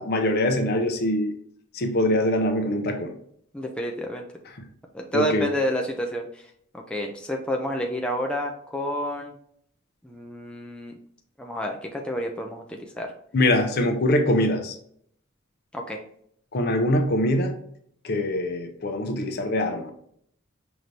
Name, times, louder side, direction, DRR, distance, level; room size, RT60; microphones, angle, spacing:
voice 1, 0.0-1.3 1.7-3.1 5.1-5.5 13.3-14.7 16.5-17.5 18.0-19.9, left 1 dB, 50° left, 6 dB, 0.6 m, -23 dB
voice 2, 3.5-4.3 4.9-6.4 6.9-9.3 10.0-10.9 11.4-13.1 15.7-16.0, equal, 5° left, 1 dB, 0.4 m, -29 dB
5.9 x 2.6 x 3.2 m, 0.67 s
head